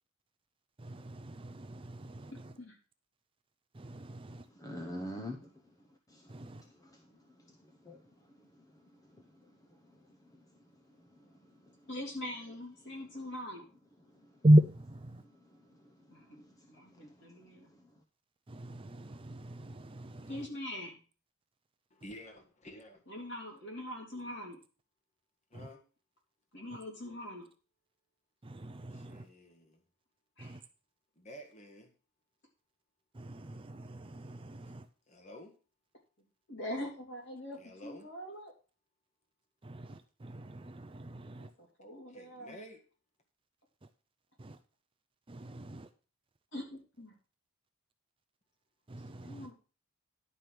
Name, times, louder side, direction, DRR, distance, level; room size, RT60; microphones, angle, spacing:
voice 1, 0.8-2.5 3.7-4.5 6.3-6.6 14.4-15.2 18.5-20.5 25.5-25.7 28.4-29.3 30.4-30.6 33.1-34.9 39.6-41.5 44.4-44.6 45.3-45.9 48.9-49.5, right 1 dB, 25° right, 0.5 m, -33 dB
voice 2, 4.3-11.9 14.1-14.4 15.1-18.0, left 1 dB, 15° left, 0.8 m, -50 dB
voice 3, 11.9-13.6 16.1-17.7 20.3-21.0 23.1-24.6 26.5-27.5 30.4-30.6 36.5-38.5 41.3-42.6 46.5-47.1 49.2-49.5, left 1 dB, 55° left, 3.5 m, -43 dB
voice 4, 21.9-23.0 25.5-25.8 28.9-29.8 31.1-31.9 35.1-35.5 37.5-38.1 42.1-42.8 49.0-49.1, equal, 30° left, 1.6 m, -51 dB
11.0 x 5.2 x 6.0 m
head